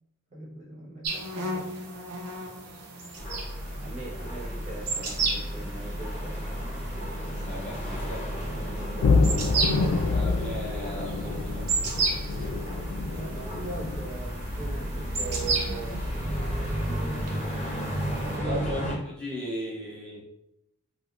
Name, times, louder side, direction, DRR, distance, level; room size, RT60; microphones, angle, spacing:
voice 1, 0.3-1.8 3.8-6.4 13.1-16.0 18.2-18.6, right 3 dB, 30° right, -5 dB, 0.7 m, -40 dB
sound 1, 1.0-18.4, right 3 dB, 80° right, 0.5 m, -35 dB
sound 2, 3.2-18.9, equal, 30° left, 0.9 m, -33 dB
voice 2, 7.4-8.7 9.7-11.7 12.4-12.8 18.4-20.2, equal, 5° left, -8 dB, 0.7 m, -37 dB
sound 3, 9.0-14.1, left 4 dB, 85° left, 0.3 m, -27 dB
3.2 x 2.4 x 2.5 m, 0.85 s
head